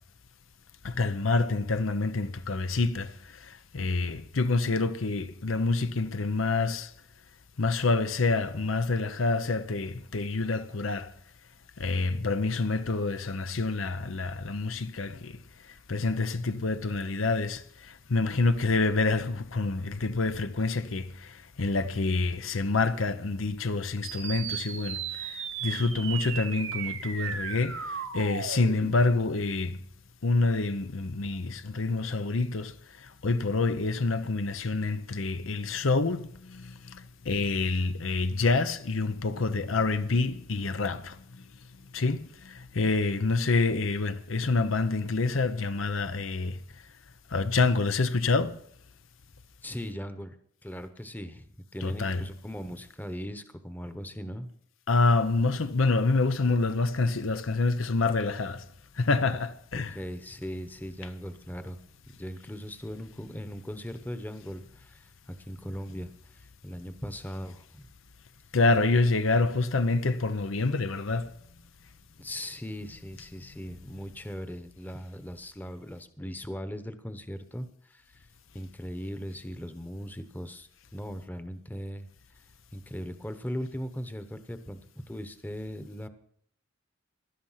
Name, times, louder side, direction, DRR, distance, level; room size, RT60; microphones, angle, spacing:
voice 1, 0.8-3.1 3.4-6.9 7.6-11.1 11.8-15.4 15.9-29.8 30.2-32.7 33.0-41.2 41.9-46.6 47.3-48.6 51.8-52.3 54.9-58.6 59.0-60.0 68.5-71.3, left 3 dB, 85° left, 0.8 m, -27 dB
sound 1, 24.0-29.0, right 7 dB, 80° right, 2.1 m, -36 dB
voice 2, 49.6-50.4 50.6-54.5 59.7-61.8 62.2-67.9 72.2-78.3 78.5-82.1 82.7-84.8 85.1-86.1, equal, 10° left, 1.0 m, -39 dB
17.0 x 12.0 x 5.7 m
head